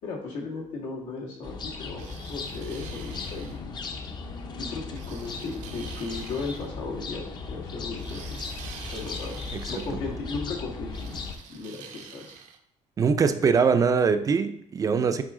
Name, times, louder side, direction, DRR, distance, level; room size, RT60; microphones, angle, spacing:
voice 1, 0.0-3.8 4.6-8.4 8.9-9.4 9.7-11.2 11.5-12.4, left 3 dB, 90° left, -1 dB, 1.9 m, -36 dB
sound 1, 1.4-11.3, left 4 dB, 35° left, 0.6 m, -37 dB
sound 2, 2.0-3.6 4.9-6.7 7.9-10.0 10.9-12.6, right 7 dB, 80° right, 0.8 m, -46 dB
voice 2, 13.0-15.2, right 5 dB, 30° right, 10 dB, 0.4 m, -22 dB
7.6 x 4.6 x 3.7 m, 0.68 s
cardioid pair, 160°, 13 cm